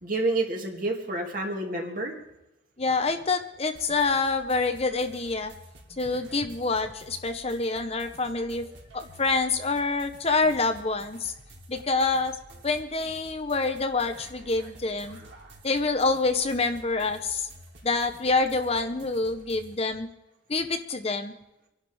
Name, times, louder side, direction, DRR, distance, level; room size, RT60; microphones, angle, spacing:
voice 1, 0.0-2.2, right 2 dB, 45° right, 0 dB, 2.4 m, -29 dB
voice 2, 2.8-5.5 5.9-8.7 8.9-11.3 11.7-12.4 12.6-15.2 15.6-17.5 17.8-20.1 20.5-21.3, left 3 dB, 35° left, 7 dB, 0.9 m, -26 dB
sound 1, 3.7-19.7, right 1 dB, 70° right, 3.2 m, -50 dB
26.0 x 11.5 x 3.5 m, 0.93 s
head